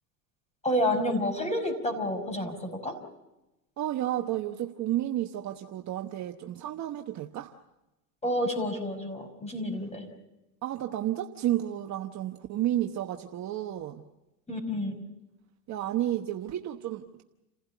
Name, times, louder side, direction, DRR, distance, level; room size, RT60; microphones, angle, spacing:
voice 1, 0.6-3.0 8.2-10.1 14.5-15.0, left 1 dB, 15° left, 5 dB, 5.4 m, -29 dB
voice 2, 3.8-7.5 10.6-14.0 15.7-17.2, right 13 dB, 35° right, 4 dB, 1.1 m, -31 dB
29.0 x 16.0 x 8.3 m, 0.98 s
supercardioid pair, 120°, 48 cm